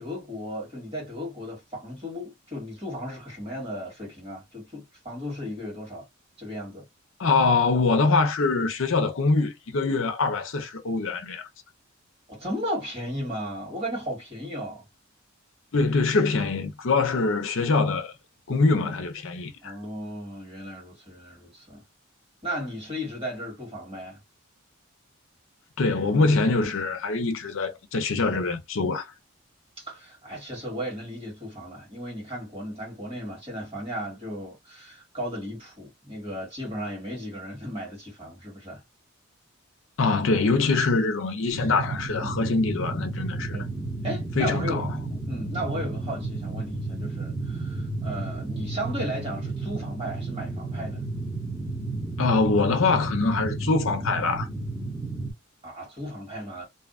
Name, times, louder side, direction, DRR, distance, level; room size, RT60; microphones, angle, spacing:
voice 1, 0.0-6.0 6.4-6.9 12.3-14.8 19.6-21.8 22.4-24.2 29.8-38.8 42.2-42.5 43.5-43.7 44.0-44.8 45.3-51.0 55.6-56.6, equal, 25° right, 1.6 m, -35 dB
voice 2, 7.2-11.5 15.7-18.1 18.5-19.8 25.8-29.1 40.0-43.6 44.4-44.9 52.2-54.5, left 3 dB, 65° left, 0.6 m, -24 dB
sound 1, 41.5-55.3, right 3 dB, 5° right, 1.0 m, -32 dB
2.6 x 2.3 x 2.4 m
head